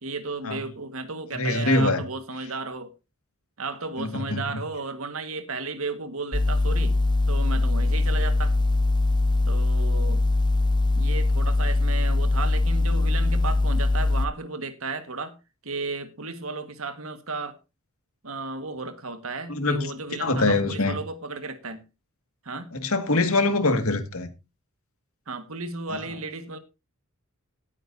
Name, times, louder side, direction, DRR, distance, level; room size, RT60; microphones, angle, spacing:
voice 1, 0.0-2.9 3.6-7.0 7.3-8.6 9.5-10.2 10.9-15.3 15.6-17.6 18.2-21.8 22.4-22.7 25.3-26.6, right 3 dB, 75° right, 1.7 m, -34 dB
voice 2, 1.3-2.0 4.0-4.6 19.5-19.9 20.2-21.0 22.7-24.3, left 2 dB, 85° left, 2.0 m, -23 dB
sound 1, 6.3-14.3, left 2 dB, 20° left, 0.5 m, -22 dB
17.5 x 9.2 x 2.7 m
head